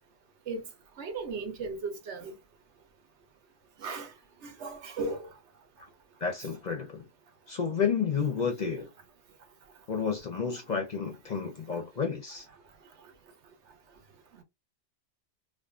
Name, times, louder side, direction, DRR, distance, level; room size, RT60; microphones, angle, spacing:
voice 1, 1.0-2.4 3.8-4.1 4.4-5.3 10.5-10.6 11.7-11.8, right 3 dB, 75° right, 1.0 m, -36 dB
voice 2, 6.2-7.0 7.5-8.9 9.9-12.4, left 6 dB, 50° left, 0.6 m, -31 dB
2.5 x 2.4 x 2.3 m
omnidirectional pair, 1.2 m